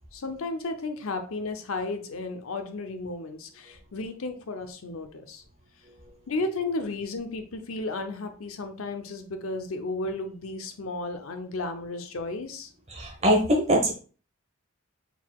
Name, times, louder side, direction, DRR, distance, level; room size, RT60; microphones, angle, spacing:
voice 1, 0.1-5.4 6.3-12.7, left 2 dB, 85° left, 7 dB, 0.7 m, -33 dB
voice 2, 12.9-13.9, equal, 30° right, 1 dB, 1.1 m, -22 dB
4.5 x 4.0 x 2.3 m, 0.38 s
head